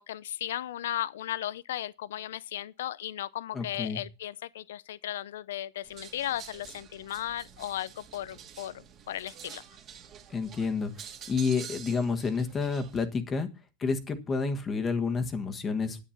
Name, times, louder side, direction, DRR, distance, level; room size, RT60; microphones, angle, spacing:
voice 1, 0.0-9.6, left 12 dB, 80° left, 0.6 m, -36 dB
voice 2, 3.5-4.0 10.3-10.9 11.3-13.5 13.8-16.0, left 4 dB, 15° left, 1.4 m, -29 dB
sound 1, 5.8-13.1, right 8 dB, 25° right, 1.9 m, -48 dB
10.5 x 9.3 x 5.8 m
supercardioid pair, 155°, 0 cm